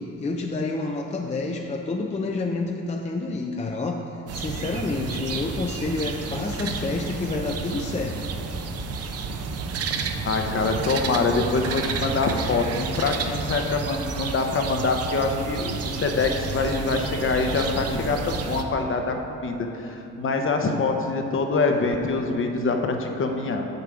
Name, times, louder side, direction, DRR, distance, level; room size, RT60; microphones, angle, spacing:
voice 1, 0.0-8.2, left 3 dB, 25° left, 2 dB, 0.4 m, -29 dB
sound 1, 4.3-18.6, right 4 dB, 55° right, 0.7 m, -31 dB
voice 2, 10.2-23.7, left 3 dB, 45° left, 4 dB, 0.8 m, -25 dB
6.8 x 6.4 x 4.9 m, 2.9 s
cardioid pair, 90°, 30 cm